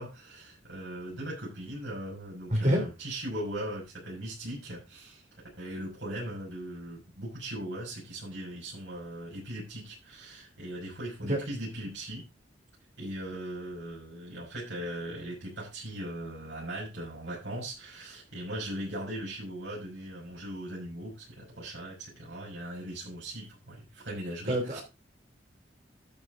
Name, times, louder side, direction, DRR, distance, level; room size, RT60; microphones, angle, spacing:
voice 1, 0.0-5.2 5.6-12.2 13.0-24.8, right 1 dB, 75° right, -5 dB, 6.0 m, -39 dB
voice 2, 2.5-2.8 11.3-11.4 24.5-24.8, equal, 40° right, 2 dB, 3.7 m, -26 dB
11.5 x 8.0 x 3.8 m, 0.26 s
head